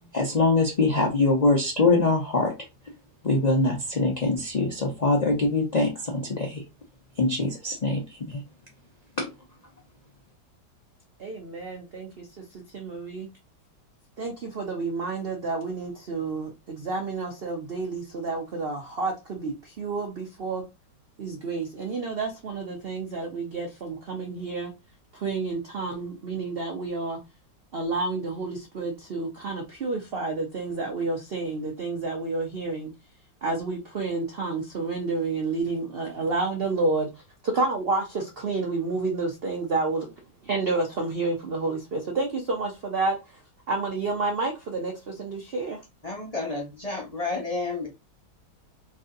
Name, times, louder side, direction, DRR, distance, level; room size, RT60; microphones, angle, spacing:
voice 1, 0.1-2.5 3.2-6.6 7.2-8.4 9.2-9.3, left 3 dB, 60° left, 0.4 m, -23 dB
voice 2, 11.2-13.3 14.2-20.6 21.2-24.7 25.1-27.2 27.7-32.9 33.4-37.1 37.4-40.1 40.4-43.4 43.7-45.8, right 3 dB, 70° right, 0.5 m, -30 dB
voice 3, 46.0-47.9, left 3 dB, 30° left, 0.8 m, -31 dB
3.2 x 2.6 x 3.8 m
omnidirectional pair, 1.9 m